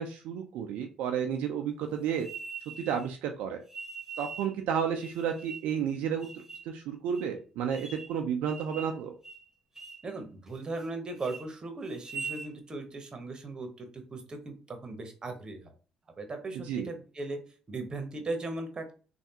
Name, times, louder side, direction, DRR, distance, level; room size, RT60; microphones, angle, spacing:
voice 1, 0.0-2.3 2.8-3.6 4.2-6.3 6.7-9.2 16.6-16.9, right 8 dB, 80° right, 4 dB, 0.4 m, -32 dB
sound 1, 2.2-3.0 3.7-4.5 5.0-5.7 6.2-6.7 7.1-7.2 7.7-8.2 8.5-9.0 9.2-9.4 9.7-10.1 10.5-10.9 11.2-11.4 11.9-12.5, right 5 dB, 15° right, 1.2 m, -42 dB
voice 2, 10.0-15.7 16.2-17.4 17.7-18.9, right 2 dB, 35° right, 5 dB, 0.9 m, -38 dB
3.3 x 2.3 x 2.8 m, 0.36 s
supercardioid pair, 65°, 2 cm